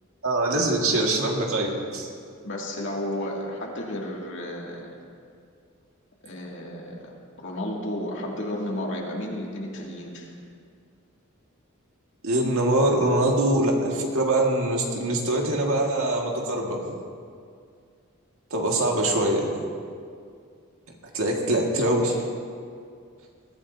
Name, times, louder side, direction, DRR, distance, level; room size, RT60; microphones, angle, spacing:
voice 1, 0.2-2.1 12.2-16.8 18.5-19.5 21.1-22.2, right 1 dB, 70° right, 0 dB, 2.0 m, -23 dB
voice 2, 2.4-4.9 6.2-7.1 7.4-10.3, left 1 dB, 60° left, -2 dB, 2.5 m, -32 dB
21.5 x 14.0 x 2.8 m, 2.2 s
head